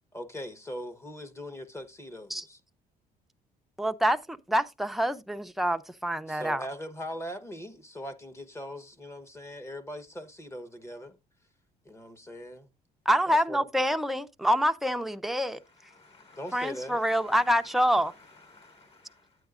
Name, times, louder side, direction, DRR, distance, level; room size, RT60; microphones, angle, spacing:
voice 1, 0.1-2.6 6.3-11.2 11.8-12.7 13.3-13.7 16.4-17.0, equal, 15° left, 1.0 m, -40 dB
voice 2, 3.8-6.6 13.1-15.6 16.5-18.1, equal, ahead, 0.5 m, -26 dB
voice 3, 15.8-19.4, left 3 dB, 35° left, 4.8 m, -55 dB
9.2 x 8.7 x 2.4 m
cardioid pair, 110°, 17 cm